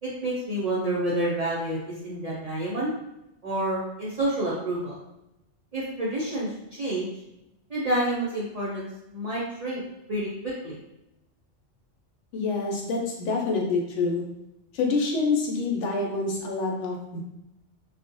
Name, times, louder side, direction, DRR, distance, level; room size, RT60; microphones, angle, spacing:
voice 1, 0.0-2.9 3.4-5.0 5.7-7.1 7.7-9.8 10.1-10.3 10.6-10.8, right 1 dB, 50° right, -8 dB, 0.4 m, -29 dB
voice 2, 12.3-14.2 14.7-17.2, left 3 dB, 80° left, 0 dB, 0.9 m, -27 dB
2.3 x 2.1 x 2.6 m, 0.88 s
omnidirectional pair, 1.2 m